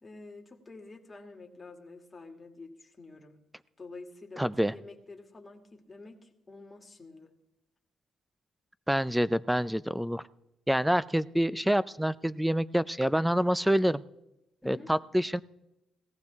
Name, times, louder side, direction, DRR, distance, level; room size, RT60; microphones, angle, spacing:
voice 1, 0.0-3.4 3.8-7.3 14.6-14.9, left 3 dB, 25° left, 2 dB, 2.3 m, -48 dB
voice 2, 4.4-4.7 8.9-10.3 10.7-14.0 14.7-15.4, equal, 5° right, 17 dB, 0.5 m, -27 dB
18.0 x 14.5 x 3.6 m, 0.90 s
cardioid pair, 90°, 0 cm